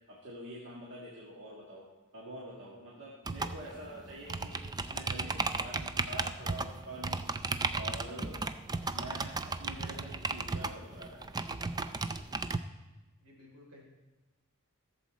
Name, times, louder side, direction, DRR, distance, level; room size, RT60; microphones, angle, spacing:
voice 1, 0.1-7.2 7.8-8.4 8.9-11.2, right 1 dB, 55° right, -5 dB, 1.8 m, -46 dB
sound 1, 3.3-12.6, right 3 dB, 20° right, 0.3 m, -35 dB
voice 2, 13.2-13.8, left 1 dB, 75° right, -2 dB, 3.4 m, -55 dB
15.0 x 7.2 x 4.2 m, 1.1 s
head